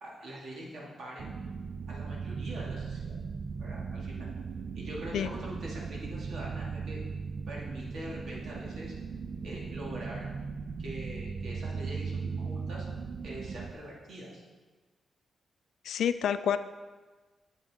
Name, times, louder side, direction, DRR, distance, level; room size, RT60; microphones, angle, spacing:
voice 1, 0.0-1.3 1.9-3.2 3.6-4.3 4.8-7.0 7.5-8.9 9.4-10.3 10.8-12.9 13.2-14.4, right 1 dB, 75° right, -4 dB, 2.2 m, -43 dB
sound 1, 1.2-13.7, right 5 dB, 55° right, 0.4 m, -38 dB
voice 2, 15.8-16.6, left 8 dB, 90° left, 12 dB, 0.3 m, -28 dB
7.9 x 7.7 x 3.6 m, 1.3 s
wide cardioid pair, 130°, 0 cm